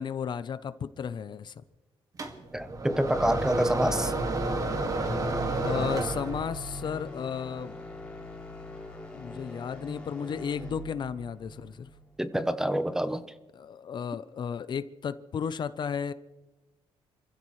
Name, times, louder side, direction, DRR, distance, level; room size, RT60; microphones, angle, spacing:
voice 1, 0.0-1.6 5.6-7.8 9.1-11.9 13.5-16.1, left 7 dB, 50° left, 0.6 m, -34 dB
sound 1, 2.2-6.7, right 2 dB, 35° right, 1.9 m, -30 dB
voice 2, 2.5-4.1 12.2-13.2, equal, 5° right, 0.9 m, -27 dB
sound 2, 4.9-13.1, equal, 10° left, 3.4 m, -43 dB
28.0 x 15.5 x 3.2 m
cardioid pair, 115°, 10 cm